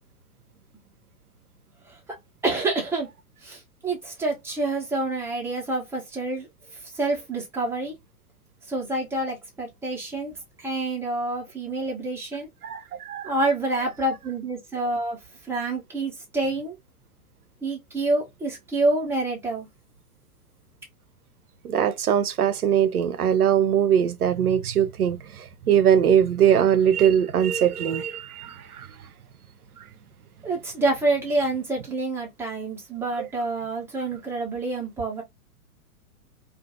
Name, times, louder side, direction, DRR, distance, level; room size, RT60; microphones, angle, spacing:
voice 1, 2.4-3.1 3.4-6.5 6.8-7.9 8.7-12.5 13.2-15.2 15.5-16.8 17.6-19.7 30.4-35.2, right 2 dB, 5° right, 0.8 m, -27 dB
voice 2, 12.6-13.4 21.6-28.9, right 9 dB, 80° right, 0.5 m, -21 dB
2.4 x 2.4 x 2.7 m
figure-of-eight pair, 105°, 44 cm